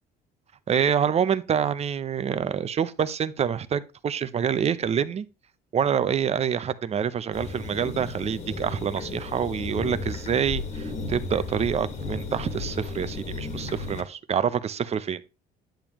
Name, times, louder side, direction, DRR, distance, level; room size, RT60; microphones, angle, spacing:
voice 1, 0.7-5.3 5.7-15.2, right 8 dB, 40° right, 0.7 m, -26 dB
sound 1, 7.3-14.0, left 3 dB, 45° left, 2.0 m, -34 dB
10.5 x 7.0 x 3.0 m
cardioid pair, 110°, 17 cm